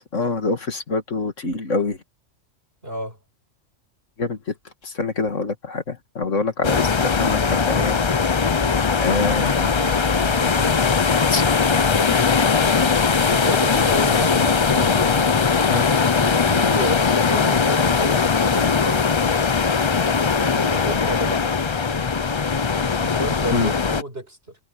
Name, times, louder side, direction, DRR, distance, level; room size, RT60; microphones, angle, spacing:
voice 1, 0.1-2.0 4.2-4.4 4.8-8.0 9.0-9.7 11.3-11.4 15.1-15.2 15.7-15.9 23.5-23.7, left 3 dB, 85° left, 2.6 m, -25 dB
voice 2, 2.8-3.2 9.7-10.8 13.3-15.2 16.2-19.4 20.2-21.5 23.0-24.6, right 1 dB, 50° right, 8.1 m, -31 dB
sound 1, 6.6-24.0, left 5 dB, 35° left, 0.5 m, -20 dB
omnidirectional pair, 1.3 m